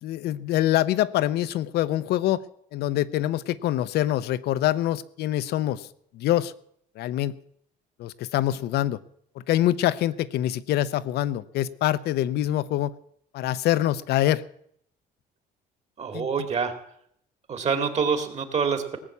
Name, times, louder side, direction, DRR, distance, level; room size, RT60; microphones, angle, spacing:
voice 1, 0.0-2.4 2.7-5.9 6.1-6.5 7.0-7.4 8.0-9.0 9.4-12.9 13.3-14.4 16.1-16.3, left 13 dB, 75° left, 16 dB, 0.7 m, -25 dB
voice 2, 16.0-16.7 17.5-19.0, right 6 dB, 40° right, 8 dB, 2.2 m, -26 dB
18.0 x 6.9 x 8.4 m, 0.69 s
cardioid pair, 110°, 17 cm